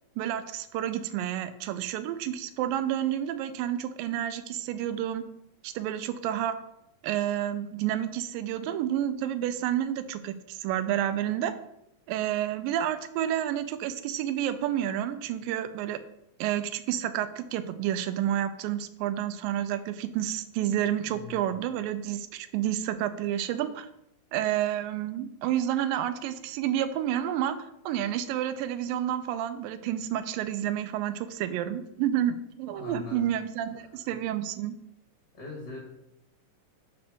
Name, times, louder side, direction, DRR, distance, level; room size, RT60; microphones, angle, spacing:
voice 1, 0.2-5.2 5.6-6.6 7.0-11.5 12.1-16.0 16.4-23.9 24.3-34.8, right 11 dB, 85° right, 11 dB, 2.2 m, -30 dB
voice 2, 21.0-21.5 32.7-33.3 35.3-35.8, left 3 dB, 45° left, -4 dB, 1.4 m, -41 dB
5.2 x 4.3 x 6.1 m, 0.81 s
omnidirectional pair, 4.0 m